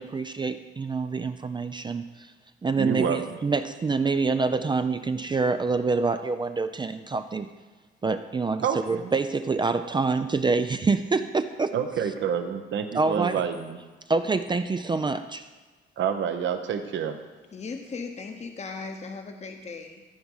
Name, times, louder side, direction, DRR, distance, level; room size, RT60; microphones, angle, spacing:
voice 1, 0.0-2.3 2.6-7.5 8.0-11.7 12.9-13.4 14.1-15.5, right 4 dB, 25° right, 9 dB, 0.4 m, -26 dB
voice 2, 2.8-3.2 8.6-9.1 11.7-13.8 16.0-17.2, right 7 dB, 70° right, 7 dB, 1.0 m, -28 dB
voice 3, 17.5-20.0, left 4 dB, 35° left, 4 dB, 1.0 m, -37 dB
14.0 x 4.7 x 5.6 m, 1.3 s
cardioid pair, 90°, 20 cm